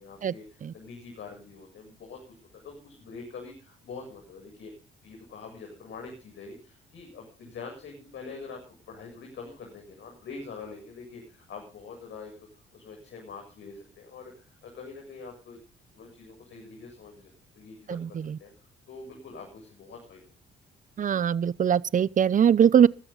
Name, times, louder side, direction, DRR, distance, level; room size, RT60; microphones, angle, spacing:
voice 1, 0.0-2.2 2.6-4.7 5.0-8.6 8.9-12.5 12.7-15.6 15.9-20.3, left 4 dB, 70° left, 7.8 m, -44 dB
voice 2, 21.0-22.9, right 8 dB, 40° right, 0.7 m, -20 dB
22.0 x 13.5 x 4.0 m
cardioid pair, 90°, 20 cm